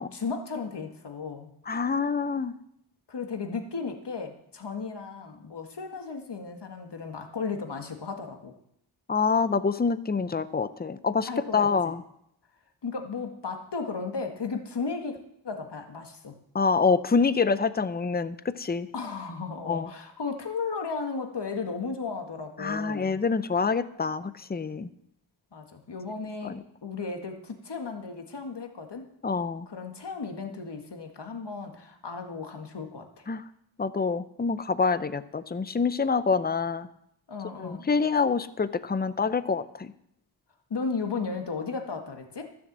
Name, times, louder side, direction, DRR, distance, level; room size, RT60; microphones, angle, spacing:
voice 1, 0.1-1.5 3.1-8.5 11.3-11.7 12.8-15.2 15.4-16.3 18.9-23.2 25.5-29.1 29.7-33.3 37.3-37.9 40.7-42.5, left 4 dB, 60° left, 4 dB, 1.7 m, -35 dB
voice 2, 1.7-2.5 9.1-12.0 16.5-18.9 19.7-19.9 22.6-24.9 26.4-26.6 29.2-29.7 33.3-33.4 33.8-36.9 37.6-39.9, left 5 dB, 20° left, 14 dB, 0.6 m, -26 dB
13.0 x 7.2 x 7.3 m, 0.74 s
wide cardioid pair, 65°, 47 cm